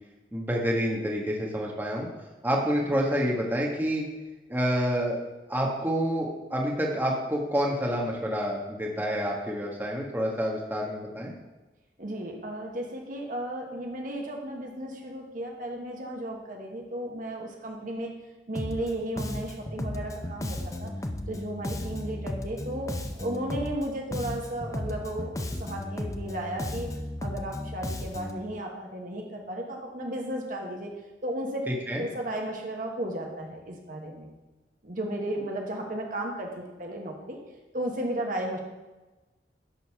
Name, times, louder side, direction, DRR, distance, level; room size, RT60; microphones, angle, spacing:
voice 1, 0.3-2.1 2.4-4.0 4.5-5.2 5.5-11.3 31.7-32.0, equal, 10° right, -2 dB, 1.3 m, -28 dB
voice 2, 12.0-18.1 18.5-20.9 21.3-26.9 27.2-30.9 31.2-31.6 32.0-34.3 34.8-37.4 37.7-38.6, right 1 dB, 50° right, 1 dB, 1.2 m, -34 dB
Bass guitar, 18.6-18.9 19.2-23.9 24.1-28.4, left 1 dB, 20° left, 0.6 m, -34 dB
11.0 x 4.1 x 5.9 m, 1.1 s
head